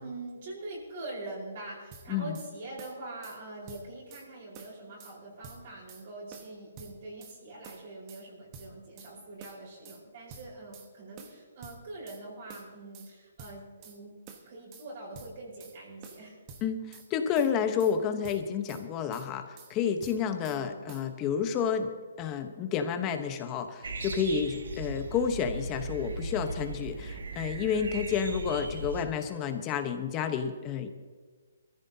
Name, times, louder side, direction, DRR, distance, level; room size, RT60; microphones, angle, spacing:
voice 1, 0.0-14.2 14.4-16.4 20.1-20.8, right 2 dB, 45° right, -4 dB, 4.6 m, -44 dB
sound 1, 1.9-2.5 2.8-3.4 3.7-4.3 4.6-5.2 5.4-6.0 6.3-7.4 7.6-8.2 8.5-9.1 9.4-10.0 10.3-10.9 11.2-12.2 12.5-13.1 13.4-14.0 14.3-14.9 15.1-15.8 16.0-17.1 17.4-18.0 18.2-18.8 19.1-19.7 20.0-20.6 20.9-21.1, right 5 dB, 20° right, 1.1 m, -49 dB
voice 2, 16.6-21.9 22.2-30.9, left 7 dB, 20° left, 7 dB, 1.0 m, -30 dB
sound 2, 23.8-29.0, right 2 dB, 85° right, 1.7 m, -38 dB
22.5 x 14.5 x 2.8 m, 1.5 s
hypercardioid pair, 165°, 0 cm